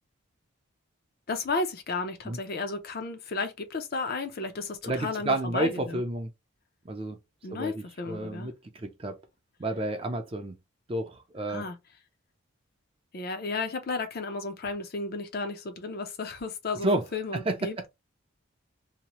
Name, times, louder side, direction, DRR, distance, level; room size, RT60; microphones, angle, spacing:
voice 1, 1.3-6.0 7.4-8.5 11.5-11.8 13.1-17.9, left 3 dB, 45° left, 0.5 m, -33 dB
voice 2, 4.8-6.3 6.9-7.2 7.5-9.2 9.6-10.5 10.9-11.6 16.8-17.0 17.3-17.5, right 1 dB, 25° right, 0.4 m, -30 dB
2.8 x 2.0 x 2.9 m
head